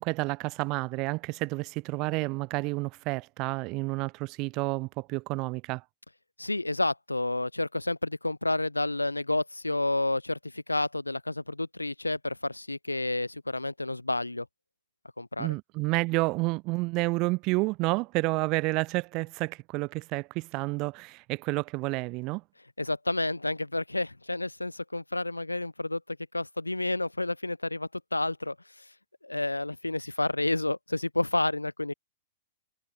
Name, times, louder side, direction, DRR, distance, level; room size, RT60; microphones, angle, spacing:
voice 1, 0.0-5.8 15.4-22.4, right 25 dB, 35° right, 1.0 m, -30 dB
voice 2, 6.4-14.5 15.2-15.5 22.8-28.6 29.2-31.9, left 2 dB, 85° left, 0.5 m, -30 dB
figure-of-eight pair, 105°, 0 cm